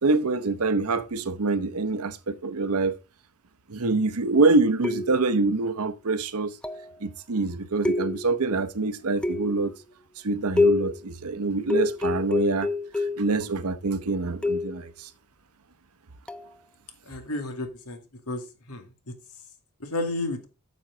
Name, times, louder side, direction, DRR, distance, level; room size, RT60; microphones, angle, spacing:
voice 1, 0.0-3.0 3.7-6.5 7.0-9.7 10.2-12.7 12.9-15.1, right 3 dB, 80° right, 0.8 m, -25 dB
sound 1, 4.8-5.4 6.6-7.0 7.8-8.5 9.2-9.7 10.6-11.0 11.7-13.3 14.4-14.8 16.3-16.5, left 3 dB, 5° left, 0.4 m, -26 dB
voice 2, 17.1-18.0 18.3-19.1 19.8-20.5, left 2 dB, 85° left, 2.2 m, -32 dB
9.2 x 7.2 x 3.9 m
head